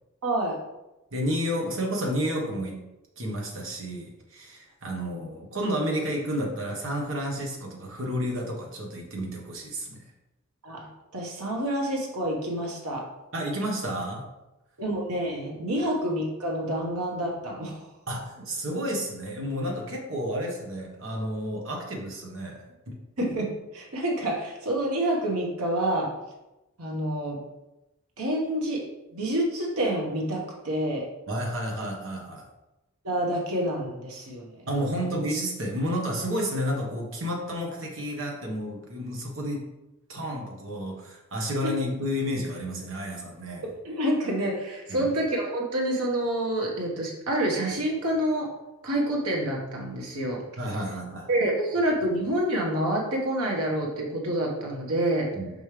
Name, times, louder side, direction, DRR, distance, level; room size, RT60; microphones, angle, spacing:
voice 1, 0.2-0.6 5.0-5.2 10.6-10.9 11.1-13.1 14.8-17.8 23.2-23.4 23.7-26.1 26.8-27.4 28.2-28.8 29.1-31.1 33.0-34.5 41.6-41.7 43.8-48.5 48.8-50.4 51.3-55.3, right 1 dB, 90° right, -1 dB, 1.4 m, -27 dB
voice 2, 1.1-2.8 3.2-10.1 13.3-14.3 15.8-15.9 18.1-23.0 31.3-32.4 34.7-39.6 40.1-43.7 44.9-45.1 50.6-51.3 55.3-55.5, equal, 60° right, -1 dB, 1.4 m, -31 dB
5.4 x 5.3 x 3.3 m, 0.98 s
head